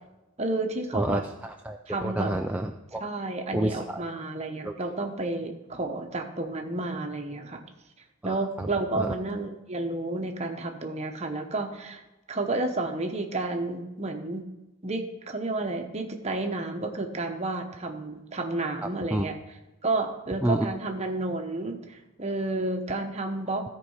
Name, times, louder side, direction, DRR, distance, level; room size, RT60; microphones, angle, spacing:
voice 1, 0.4-1.2 1.9-2.3 3.0-7.6 8.2-12.0 12.3-14.4 14.8-19.3 19.8-23.7, right 2 dB, 30° right, 4 dB, 1.0 m, -31 dB
voice 2, 0.9-3.0 3.5-4.0 4.6-4.7 8.2-8.7 8.9-9.1 18.8-19.2 20.4-20.7, right 1 dB, 5° right, 3 dB, 0.3 m, -29 dB
13.5 x 4.6 x 5.5 m, 1.0 s
head